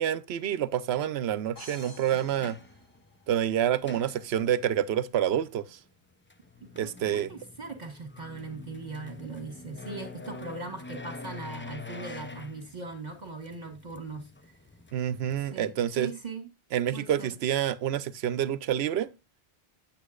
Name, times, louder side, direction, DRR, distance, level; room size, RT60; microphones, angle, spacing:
voice 1, 0.0-2.6 3.3-5.6 6.8-7.3 14.9-16.1 16.7-19.1, right 10 dB, 80° right, 0.9 m, -28 dB
sound 1, 1.2-1.3 1.9-4.8 6.1-15.5, left 3 dB, 20° left, 0.4 m, -46 dB
sound 2, 1.6-3.5, left 1 dB, 65° left, 2.9 m, -50 dB
voice 2, 6.6-14.5 15.4-16.5 16.9-17.3, right 3 dB, 45° right, 1.6 m, -40 dB
8.7 x 8.3 x 2.4 m
omnidirectional pair, 1.0 m